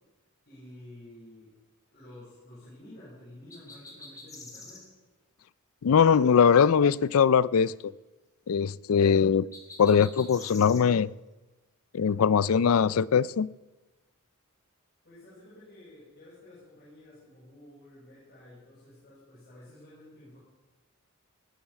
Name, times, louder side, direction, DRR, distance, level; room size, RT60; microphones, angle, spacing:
voice 1, 0.4-1.5 1.9-4.9 15.0-20.4, left 1 dB, 45° left, -9 dB, 7.2 m, -51 dB
sound 1, 3.5-4.9 9.5-10.8, left 2 dB, 15° left, 2.4 m, -46 dB
voice 2, 5.8-7.9 8.5-9.5 9.8-11.1 11.9-13.5, left 7 dB, 70° left, 20 dB, 0.4 m, -21 dB
19.0 x 8.9 x 7.2 m, 1.1 s
head